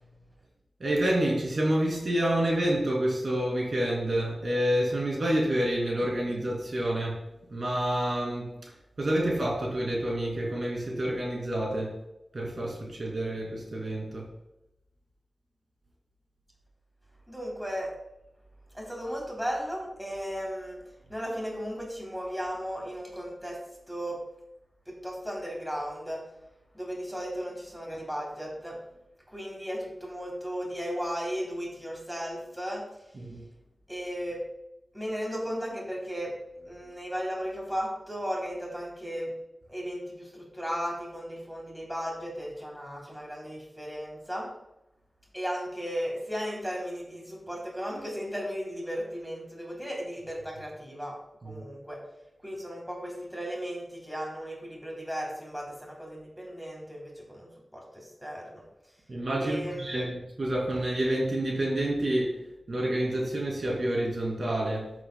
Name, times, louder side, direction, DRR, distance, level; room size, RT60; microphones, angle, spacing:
voice 1, 0.8-7.2 7.5-8.6 9.0-12.0 12.3-14.3 33.1-33.4 51.4-51.6 59.1-64.9, right 1 dB, 55° right, -2 dB, 2.5 m, -28 dB
voice 2, 17.3-17.9 18.7-20.8 21.1-23.6 23.9-24.2 24.9-26.2 26.7-28.8 29.3-32.8 33.9-34.4 34.9-36.3 36.6-39.3 39.7-44.5 45.3-51.1 51.4-52.0 52.4-58.7 59.4-60.1, equal, 5° right, -3 dB, 3.1 m, -35 dB
14.0 x 7.7 x 2.2 m, 0.92 s
wide cardioid pair, 105°, 0 cm